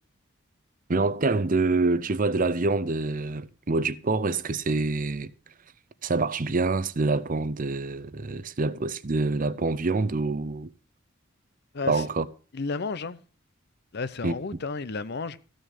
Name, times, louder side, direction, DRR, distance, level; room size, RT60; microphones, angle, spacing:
voice 1, 0.9-5.3 6.0-10.7 11.9-12.3 14.2-14.3, right 3 dB, 40° right, 0.7 m, -26 dB
voice 2, 11.7-12.1 12.5-13.2 13.9-15.4, left 4 dB, 50° left, 0.7 m, -32 dB
14.5 x 6.4 x 6.5 m
head